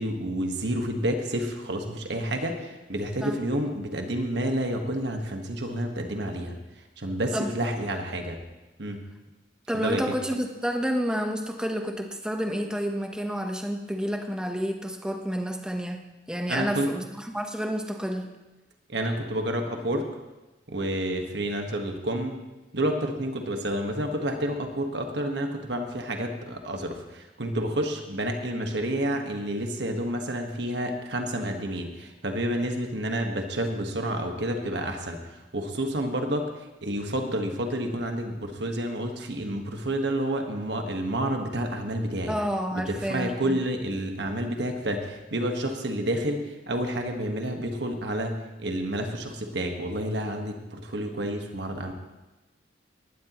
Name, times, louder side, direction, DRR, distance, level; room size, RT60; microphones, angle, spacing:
voice 1, 0.0-6.5 7.0-8.4 8.8-9.0 9.7-10.1 16.5-16.9 18.9-20.1 20.7-22.4 22.7-42.3 42.7-51.9, right 1 dB, 65° right, 4 dB, 1.5 m, -29 dB
voice 2, 9.7-18.3 42.3-43.6, equal, 5° right, 3 dB, 1.0 m, -30 dB
18.5 x 12.0 x 3.1 m, 1.1 s
head